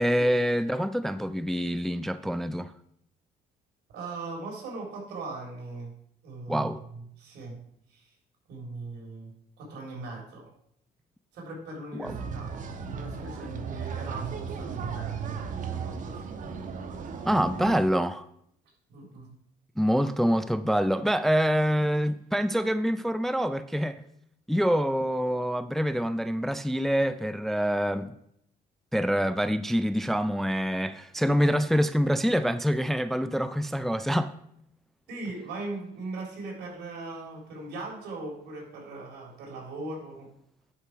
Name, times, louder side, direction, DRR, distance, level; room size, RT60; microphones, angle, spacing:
voice 1, 0.0-2.7 6.5-6.8 11.9-12.2 17.3-18.2 19.8-24.0 24.5-28.1 28.9-34.3, equal, ahead, 0.3 m, -26 dB
voice 2, 3.9-5.9 6.2-7.6 7.9-8.1 8.5-10.5 11.3-12.5 12.9-16.4 18.9-19.3 35.1-40.3, right 2 dB, 80° right, 3.8 m, -39 dB
sound 1, 12.0-17.8, right 6 dB, 50° right, 1.1 m, -35 dB
10.0 x 4.7 x 5.8 m
cardioid pair, 110°, 17 cm